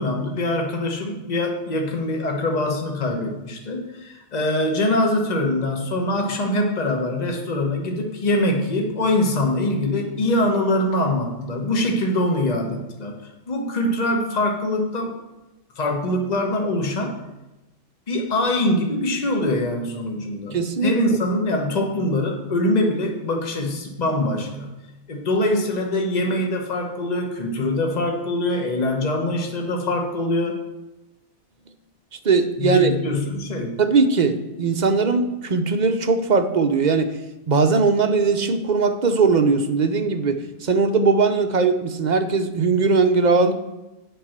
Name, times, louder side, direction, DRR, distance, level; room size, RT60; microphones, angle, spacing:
voice 1, 0.0-13.1 13.5-15.2 15.8-17.1 18.1-24.7 25.1-30.6 32.6-33.8, left 1 dB, 35° left, 1 dB, 1.2 m, -23 dB
voice 2, 20.5-20.9 32.2-32.9 33.8-37.1 37.5-43.5, right 4 dB, 45° right, 7 dB, 0.7 m, -19 dB
7.9 x 5.4 x 7.3 m, 1.0 s
omnidirectional pair, 1.2 m